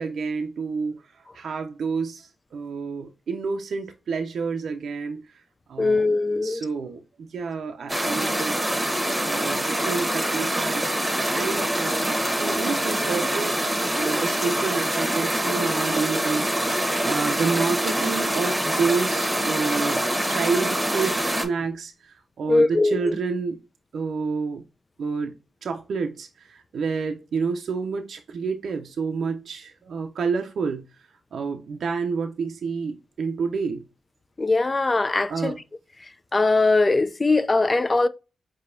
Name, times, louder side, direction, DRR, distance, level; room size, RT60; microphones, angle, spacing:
voice 1, 0.0-5.4 5.7-8.5 9.2-23.6 23.9-24.6 25.0-25.4 25.6-30.9 31.3-33.8 35.3-35.6, right 5 dB, 70° right, 0.5 m, -29 dB
voice 2, 5.8-6.6 22.5-23.1 34.4-35.5 36.3-38.1, left 3 dB, 30° left, 0.4 m, -21 dB
sound 1, 7.9-21.5, right 1 dB, 15° right, 1.1 m, -25 dB
4.7 x 2.8 x 2.5 m
supercardioid pair, 50°, 0 cm